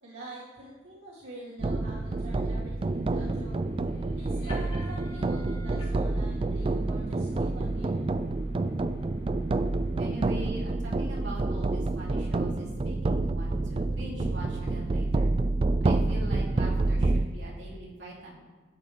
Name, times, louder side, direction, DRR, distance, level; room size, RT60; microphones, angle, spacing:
voice 1, 0.0-3.6 4.2-8.2, equal, 90° right, -9 dB, 2.3 m, -45 dB
sound 1, 1.6-17.3, right 2 dB, 30° right, 0.3 m, -28 dB
sound 2, 1.7-10.5, left 2 dB, 30° left, 3.8 m, -53 dB
voice 2, 10.0-15.3 15.8-18.3, right 1 dB, 70° right, -5 dB, 2.9 m, -42 dB
12.5 x 8.6 x 3.4 m, 1.3 s
head